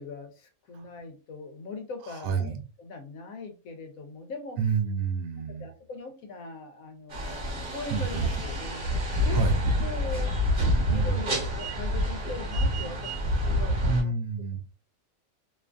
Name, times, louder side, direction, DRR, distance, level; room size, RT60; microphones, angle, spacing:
voice 1, 0.0-2.5 2.8-4.6 5.4-8.8 9.2-9.4 9.8-10.3 10.9-14.1, left 3 dB, 80° left, 6 dB, 1.1 m, -40 dB
voice 2, 2.2-2.6 4.6-5.7 7.9-8.2 9.3-9.6 10.9-11.4 13.9-14.6, right 5 dB, 80° right, 6 dB, 1.0 m, -28 dB
sound 1, 7.1-14.0, equal, 40° right, 1.1 m, -27 dB
2.8 x 2.5 x 2.2 m, 0.33 s
omnidirectional pair, 1.4 m